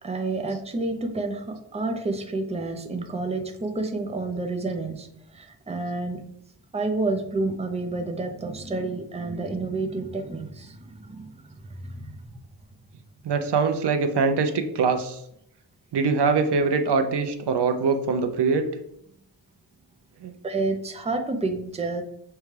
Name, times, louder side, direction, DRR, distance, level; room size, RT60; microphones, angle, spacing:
voice 1, 0.0-6.2 6.7-12.2 20.4-22.0, right 3 dB, 15° right, 5 dB, 0.6 m, -29 dB
voice 2, 13.2-15.2 15.9-18.7 20.2-20.3, right 4 dB, 70° right, 7 dB, 0.6 m, -23 dB
6.6 x 2.3 x 3.2 m, 0.74 s
wide cardioid pair, 75°, 43 cm